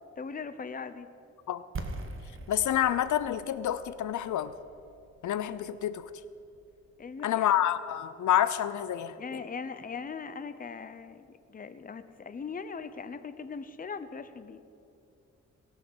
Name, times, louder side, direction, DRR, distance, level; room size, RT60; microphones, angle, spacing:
voice 1, 0.2-1.1 7.0-7.5 9.2-14.6, left 5 dB, 30° left, 11 dB, 0.7 m, -40 dB
sound 1, 1.7-7.5, right 2 dB, 45° right, 1.2 m, -44 dB
voice 2, 2.5-4.5 5.2-6.1 7.2-9.4, left 11 dB, 85° left, 14 dB, 0.5 m, -28 dB
18.0 x 6.4 x 7.8 m, 2.6 s
wide cardioid pair, 120°, 29 cm